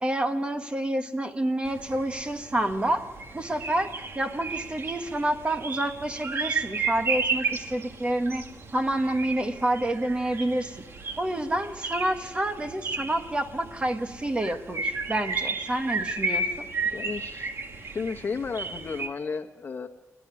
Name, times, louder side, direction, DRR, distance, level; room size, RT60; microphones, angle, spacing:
voice 1, 0.0-3.1 3.3-8.4 8.7-10.8 11.2-16.7, right 1 dB, 20° right, 7 dB, 1.4 m, -28 dB
sound 1, 1.6-19.1, right 4 dB, 50° right, 2.1 m, -33 dB
voice 2, 16.9-17.5 17.9-19.9, left 5 dB, 45° left, 7 dB, 1.3 m, -33 dB
29.5 x 11.5 x 9.8 m, 1.2 s
wide cardioid pair, 130°, 5 cm